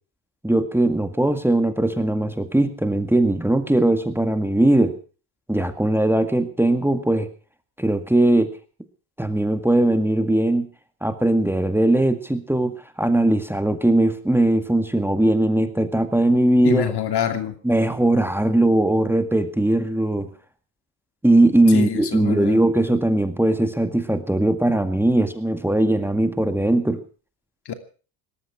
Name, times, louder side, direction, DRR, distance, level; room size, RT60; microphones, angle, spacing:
voice 1, 0.4-5.0 5.5-7.3 7.8-8.5 9.2-10.7 11.0-16.8 17.6-20.3 21.2-27.0, right 1 dB, 5° right, 8 dB, 1.9 m, -19 dB
voice 2, 16.6-17.5 21.7-22.6 27.7-27.8, left 9 dB, 55° left, 8 dB, 2.8 m, -25 dB
18.5 x 13.5 x 5.9 m, 0.39 s
supercardioid pair, 70°, 48 cm